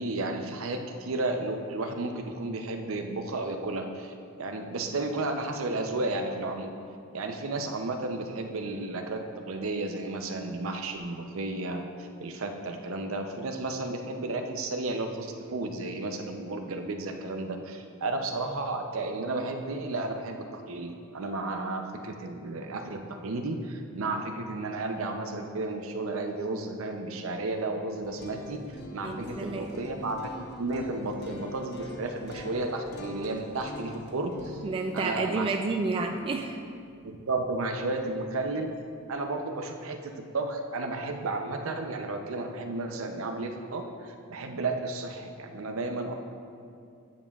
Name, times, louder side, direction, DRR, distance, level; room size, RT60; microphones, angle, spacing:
voice 1, 0.0-6.7 7.1-28.6 28.9-30.3 30.6-34.6 34.9-35.6 36.1-36.2 37.0-38.7 39.1-46.1, right 2 dB, 70° right, 5 dB, 0.6 m, -33 dB
sound 1, 28.0-38.0, left 2 dB, 55° left, 0.8 m, -45 dB
voice 2, 29.0-29.7 34.6-36.6, right 3 dB, 25° right, 3 dB, 0.3 m, -30 dB
9.5 x 7.1 x 2.4 m, 2.4 s
head